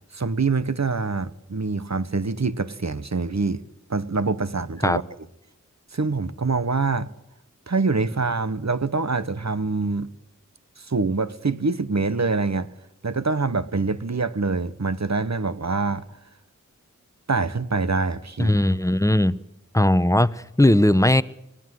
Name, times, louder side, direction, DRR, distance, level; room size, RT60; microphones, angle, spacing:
voice 1, 0.1-3.6 3.9-5.0 5.9-7.1 7.7-10.1 10.8-12.7 13.0-16.0 17.3-18.6, right 4 dB, 60° right, 1.2 m, -25 dB
voice 2, 18.4-19.4 19.7-20.3 20.6-21.2, left 1 dB, 10° left, 0.9 m, -18 dB
24.0 x 18.0 x 7.7 m
wide cardioid pair, 45°, 31 cm